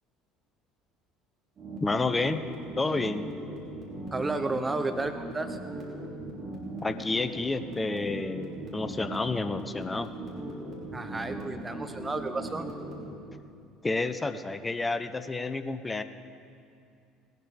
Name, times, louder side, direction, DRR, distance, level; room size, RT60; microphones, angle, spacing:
sound 1, 1.6-13.1, right 1 dB, 40° right, 3.6 m, -39 dB
voice 1, 1.8-2.4 2.8-3.3 6.8-10.1 13.8-16.0, left 3 dB, 20° left, 11 dB, 0.7 m, -30 dB
voice 2, 4.1-5.6 10.9-12.7, right 3 dB, 20° right, 9 dB, 0.6 m, -32 dB
19.5 x 12.0 x 3.4 m, 2.5 s
figure-of-eight pair, 60°, 0 cm